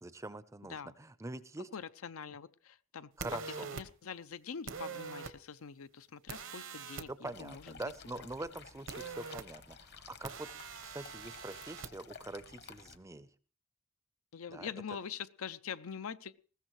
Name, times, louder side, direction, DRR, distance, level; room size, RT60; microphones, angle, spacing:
voice 1, 0.0-1.7 3.2-3.7 7.1-13.3 14.5-14.7, right 2 dB, 15° right, 14 dB, 0.6 m, -44 dB
voice 2, 0.6-0.9 1.7-3.1 3.6-7.8 8.1-8.3 14.3-16.3, left 6 dB, 75° left, 13 dB, 0.6 m, -44 dB
sound 1, 3.2-3.8 4.7-5.3 6.3-7.1 8.9-9.4 10.2-11.9, right 5 dB, 65° right, 1.0 m, -43 dB
sound 2, 7.3-13.0, left 6 dB, 50° left, 1.1 m, -54 dB
20.0 x 15.0 x 3.1 m, 0.39 s
head